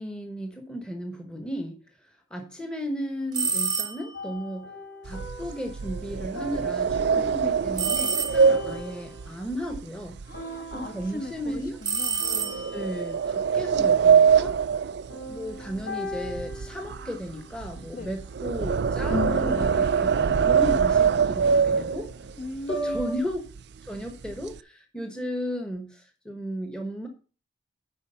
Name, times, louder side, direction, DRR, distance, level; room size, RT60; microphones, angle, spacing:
voice 1, 0.0-1.8 2.3-4.7 5.0-10.2 10.7-11.8 12.7-14.5 15.3-22.1 22.7-23.4 23.8-27.1, equal, 5° left, 4 dB, 1.1 m, -34 dB
sound 1, 3.3-4.2 7.8-8.8 11.8-13.0, right 6 dB, 20° right, 0.9 m, -28 dB
sound 2, 4.1-9.6 10.3-11.9 12.2-13.5 15.1-18.2 19.1-23.2, left 1 dB, 85° left, 4.6 m, -38 dB
sound 3, 5.1-10.4 10.7-11.1 11.6-11.7 12.5-15.8 16.1-22.3 22.9-23.0 23.3-23.6 23.9-24.6, right 6 dB, 55° right, 0.4 m, -23 dB
voice 2, 10.2-12.7 17.9-18.1 22.4-23.1, left 1 dB, 45° left, 5 dB, 1.6 m, -39 dB
9.8 x 4.7 x 6.7 m, 0.36 s
head